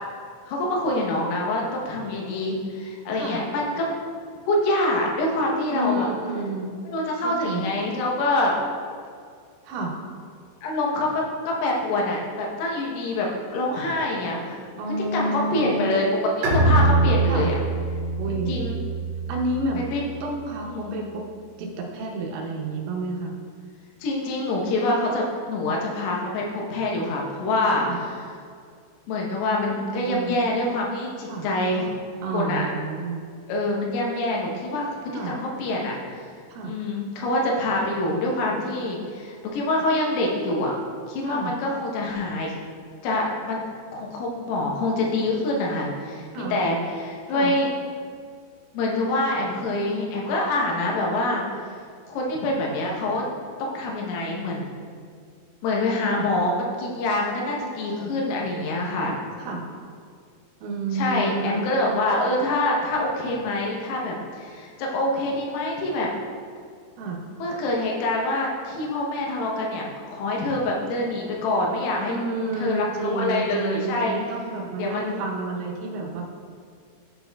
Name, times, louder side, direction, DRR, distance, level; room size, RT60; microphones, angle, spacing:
voice 1, 0.5-3.9 4.5-6.1 6.9-8.6 10.6-11.1 11.5-14.6 15.1-16.2 16.5-17.6 18.3-18.8 19.8-20.0 20.7-21.0 24.0-27.8 29.1-31.9 32.3-32.7 33.5-36.3 36.7-40.7 41.1-42.6 43.0-43.6 43.9-47.7 48.7-51.4 52.1-53.2 53.6-54.7 55.6-59.1 60.9-66.1 67.4-72.2 72.5-74.2 74.8-75.2, left 2 dB, 85° left, -2 dB, 3.7 m, -25 dB
voice 2, 5.7-6.8 7.2-7.8 9.7-10.0 14.8-16.2 17.3-17.5 18.2-18.6 19.3-19.9 20.2-21.2 21.6-23.4 27.8-28.0 29.7-30.4 31.3-31.5 32.2-33.3 35.1-35.4 36.5-36.8 41.2-41.5 46.3-46.6 47.3-47.5 56.1-56.3 59.4-59.6 60.6-62.0 67.0-67.2 72.1-76.2, right 2 dB, 85° right, 0 dB, 3.6 m, -30 dB
Bowed string instrument, 16.4-19.9, right 2 dB, 55° right, 2.5 m, -23 dB
12.5 x 4.5 x 2.3 m, 2.2 s
omnidirectional pair, 5.9 m